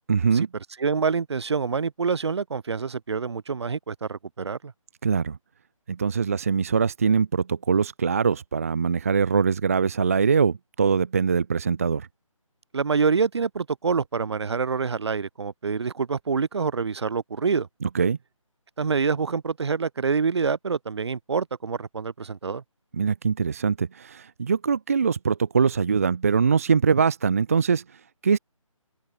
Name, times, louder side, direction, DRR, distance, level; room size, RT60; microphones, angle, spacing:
voice 1, 0.1-0.5 5.0-5.4 5.9-12.1 17.8-18.2 23.0-28.4, right 5 dB, 25° right, 0.6 m, -23 dB
voice 2, 0.8-4.7 12.7-17.7 18.8-22.6, right 5 dB, 50° right, 1.0 m, -26 dB
open air
figure-of-eight pair, 170°, 18 cm